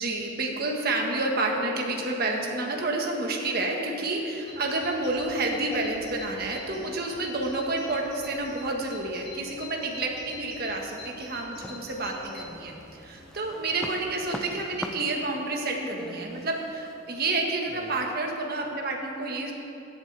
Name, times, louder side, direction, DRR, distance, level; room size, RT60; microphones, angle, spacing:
voice 1, 0.0-19.5, right 2 dB, 50° right, 1 dB, 1.5 m, -29 dB
Bird vocalization bird call bird song, 4.5-14.6, left 3 dB, 50° left, 2.5 m, -47 dB
sound 1, 11.6-12.6 13.0-18.2, equal, 5° left, 0.4 m, -41 dB
16.0 x 11.0 x 3.4 m, 2.9 s
head